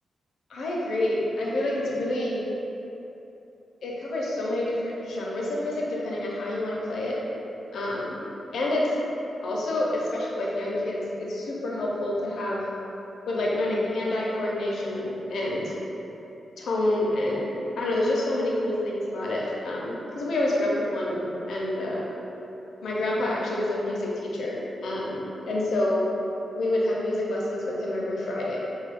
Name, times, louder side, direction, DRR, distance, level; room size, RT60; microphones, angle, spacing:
voice 1, 0.5-2.5 3.8-7.2 7.7-8.2 8.5-8.9 9.4-12.6 13.3-15.7 16.6-22.1 22.8-26.1 26.5-28.6, left 1 dB, 75° left, -4 dB, 0.5 m, -28 dB
3.1 x 2.3 x 3.3 m, 3.0 s
wide cardioid pair, 155°, 0 cm